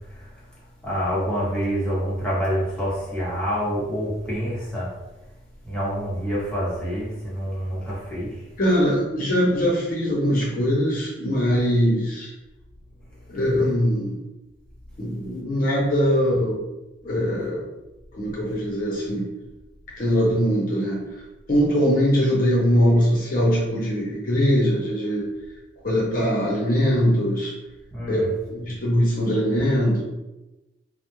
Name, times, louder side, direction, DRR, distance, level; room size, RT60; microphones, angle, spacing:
voice 1, 0.8-4.9 5.7-8.3 27.9-28.3, equal, 5° left, -9 dB, 0.8 m, -26 dB
voice 2, 8.6-12.3 13.3-14.2 15.0-16.5 17.0-17.6 18.1-19.3 20.0-21.0 21.5-25.3 25.8-27.5 28.1-30.0, equal, 50° left, -4 dB, 0.6 m, -21 dB
2.3 x 2.0 x 2.9 m, 1.0 s
head